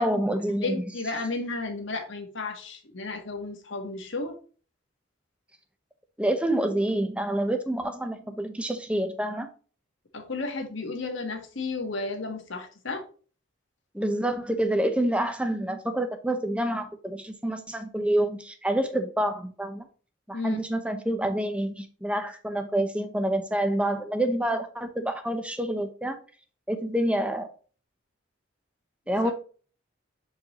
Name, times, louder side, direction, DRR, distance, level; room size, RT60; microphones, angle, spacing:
voice 1, 0.0-0.8 6.2-9.5 13.9-19.9 20.3-26.2 26.7-27.5 29.1-29.3, right 1 dB, 5° right, 0.7 m, -27 dB
voice 2, 0.6-4.4 10.1-13.0 20.3-20.6 29.2-29.3, left 3 dB, 65° left, 1.4 m, -33 dB
7.0 x 4.8 x 2.9 m
head